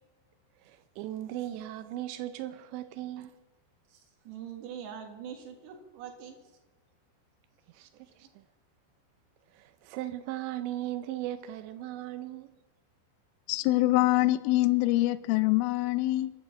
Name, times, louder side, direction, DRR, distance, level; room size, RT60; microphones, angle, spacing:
voice 1, 0.6-3.4 7.7-8.4 9.5-12.5, right 14 dB, 85° right, 2.6 m, -38 dB
voice 2, 4.3-6.4, right 8 dB, 65° right, 3.7 m, -43 dB
voice 3, 13.5-16.3, left 18 dB, 80° left, 3.0 m, -24 dB
25.0 x 8.9 x 6.1 m
omnidirectional pair, 5.9 m